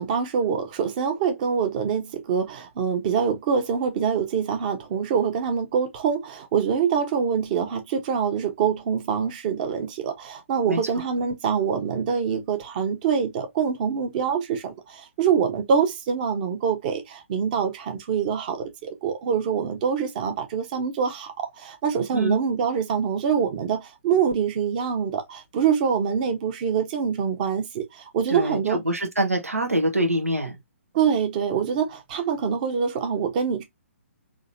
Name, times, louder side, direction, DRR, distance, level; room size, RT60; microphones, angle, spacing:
voice 1, 0.0-28.8 30.9-33.6, right 7 dB, 35° right, 1.1 m, -25 dB
voice 2, 28.3-30.6, right 1 dB, 85° right, 1.3 m, -25 dB
3.8 x 3.1 x 2.7 m
figure-of-eight pair, 130°, 8 cm